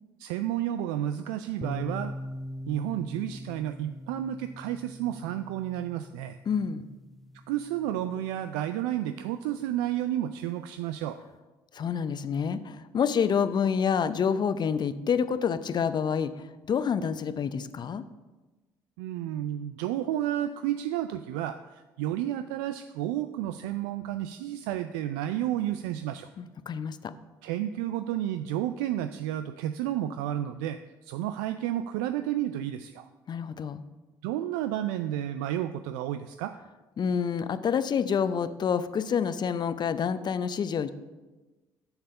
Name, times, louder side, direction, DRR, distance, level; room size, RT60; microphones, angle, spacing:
voice 1, 0.2-2.1 2.7-6.4 7.5-11.2 19.0-26.3 27.4-33.1 34.2-36.6, right 12 dB, 75° right, 10 dB, 0.4 m, -31 dB
sound 1, 1.6-9.3, equal, ahead, 0.6 m, -42 dB
voice 2, 6.5-6.9 11.7-18.0 26.4-27.1 33.3-33.8 37.0-40.9, left 7 dB, 45° left, 13 dB, 0.7 m, -28 dB
8.8 x 7.2 x 5.5 m, 1.2 s
hypercardioid pair, 55°, 11 cm